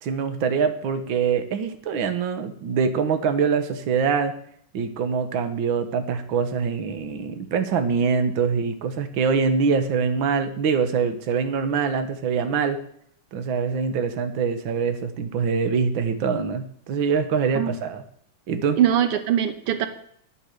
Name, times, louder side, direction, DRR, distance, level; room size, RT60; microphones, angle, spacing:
voice 1, 0.0-4.3 4.7-12.8 13.3-18.0 18.5-18.8, right 5 dB, 65° right, 9 dB, 1.9 m, -24 dB
voice 2, 18.8-19.9, right 10 dB, 85° right, 9 dB, 2.0 m, -21 dB
11.0 x 9.9 x 6.6 m, 0.64 s
omnidirectional pair, 2.4 m